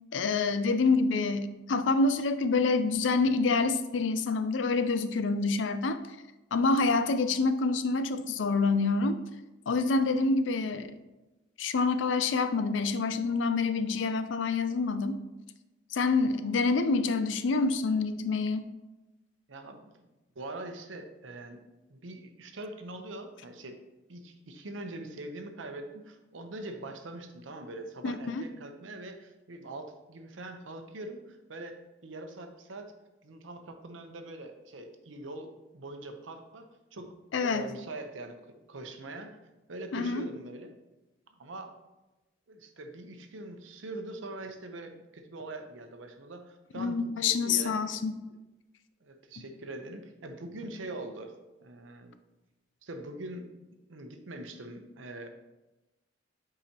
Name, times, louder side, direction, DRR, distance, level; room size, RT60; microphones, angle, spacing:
voice 1, 0.1-6.0 6.5-9.2 9.7-10.9 11.6-15.2 15.9-18.7 28.0-28.4 37.3-37.7 39.9-40.2 46.8-48.1, left 3 dB, 75° left, 11 dB, 0.5 m, -27 dB
voice 2, 19.5-19.9 20.4-21.6 21.9-23.8 24.1-32.9 33.2-37.1 37.4-38.4 38.7-39.4 39.7-40.7 41.4-41.7 42.5-47.8 49.0-51.3 51.6-52.1 52.8-53.5 53.9-55.3, right 2 dB, 90° right, 6 dB, 0.8 m, -43 dB
8.5 x 4.9 x 2.9 m, 1.0 s
head